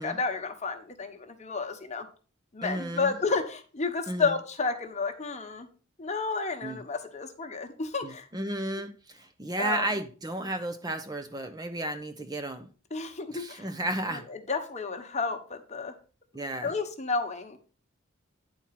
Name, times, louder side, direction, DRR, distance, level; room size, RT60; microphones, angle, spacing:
voice 1, 0.0-2.1 2.5-5.7 6.0-8.3 9.6-9.9 12.9-13.7 14.1-15.9 16.6-17.6, left 4 dB, 35° left, 1.2 m, -31 dB
voice 2, 2.6-3.1 4.1-4.3 6.6-6.8 8.0-12.7 13.3-14.2 16.3-16.7, right 1 dB, 20° right, 0.6 m, -33 dB
9.7 x 4.4 x 5.8 m
head